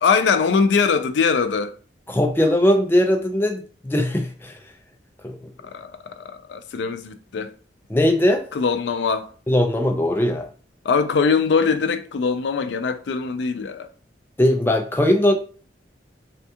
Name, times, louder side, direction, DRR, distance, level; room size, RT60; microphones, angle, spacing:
voice 1, 0.0-1.7 5.6-7.5 8.5-9.3 10.8-13.9, left 5 dB, 75° left, 0.4 m, -22 dB
voice 2, 2.1-4.5 5.2-5.4 7.9-8.4 9.5-10.5 14.4-15.3, left 1 dB, 10° left, 0.4 m, -19 dB
3.5 x 2.3 x 2.7 m
head